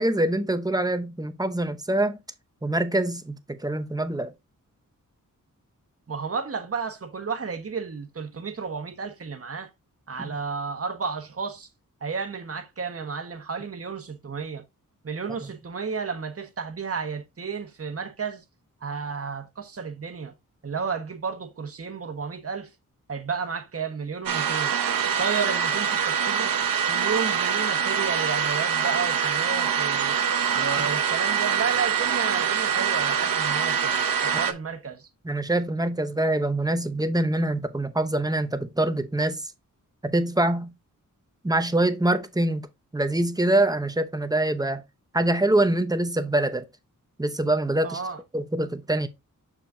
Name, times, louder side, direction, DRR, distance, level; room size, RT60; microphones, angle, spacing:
voice 1, 0.0-2.2 2.6-4.3 10.2-10.3 35.2-39.5 40.0-40.7 41.4-42.7 42.9-44.8 45.1-46.6 47.2-48.0 48.3-49.1, right 1 dB, 10° right, 0.8 m, -24 dB
voice 2, 6.1-9.7 10.1-11.7 12.0-14.6 15.0-18.4 18.8-20.3 20.6-22.7 23.1-24.7 25.2-26.5 26.9-30.2 30.5-35.0 47.8-48.2, right 5 dB, 45° right, 1.4 m, -32 dB
sound 1, 24.3-34.5, right 7 dB, 80° right, 0.9 m, -24 dB
6.6 x 6.1 x 2.7 m
wide cardioid pair, 100°, 33 cm